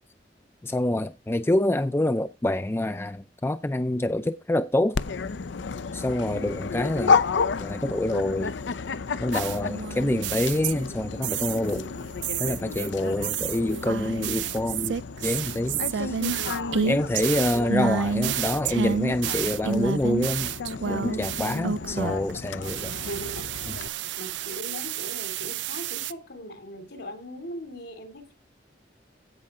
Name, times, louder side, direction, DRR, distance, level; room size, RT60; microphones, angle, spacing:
voice 1, 0.6-5.0 5.9-7.2 7.6-8.5 9.2-11.9 12.4-16.2 16.9-20.5 20.9-22.9, left 1 dB, 15° left, 0.4 m, -26 dB
Dog, 4.9-23.9, left 5 dB, 90° left, 0.6 m, -32 dB
sound 1, 9.3-10.9 11.2-11.8 12.2-22.3 22.6-26.1, right 7 dB, 90° right, 0.4 m, -30 dB
voice 2, 11.7-12.0 13.6-14.0 17.5-17.8 22.8-23.5 24.2-28.3, equal, 70° left, 3.0 m, -39 dB
16.0 x 5.6 x 3.8 m
head